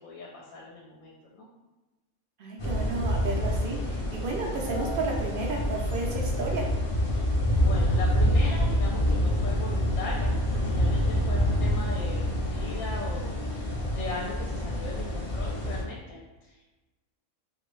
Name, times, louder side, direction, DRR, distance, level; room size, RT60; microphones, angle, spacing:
voice 1, 0.0-1.5 7.1-16.7, left 2 dB, 75° left, -3 dB, 1.0 m, -39 dB
voice 2, 2.4-6.7, right 3 dB, 60° right, -1 dB, 0.6 m, -32 dB
sound 1, 2.6-15.8, equal, 35° left, 0.5 m, -27 dB
3.0 x 2.6 x 3.1 m, 1.1 s
omnidirectional pair, 1.4 m